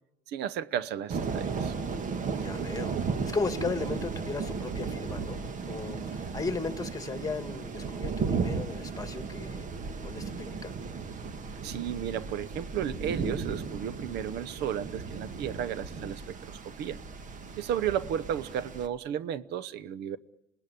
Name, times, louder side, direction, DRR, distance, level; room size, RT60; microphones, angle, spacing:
voice 1, 0.3-1.7 11.6-17.0 17.6-20.2, right 9 dB, 80° right, 17 dB, 1.0 m, -33 dB
sound 1, 1.1-18.9, right 5 dB, 50° right, 1.8 m, -35 dB
voice 2, 2.4-2.9 3.2-5.4 5.7-9.7 10.0-10.7, left 4 dB, 20° left, 9 dB, 2.1 m, -35 dB
27.0 x 19.5 x 10.0 m, 0.85 s
cardioid pair, 110°, 17 cm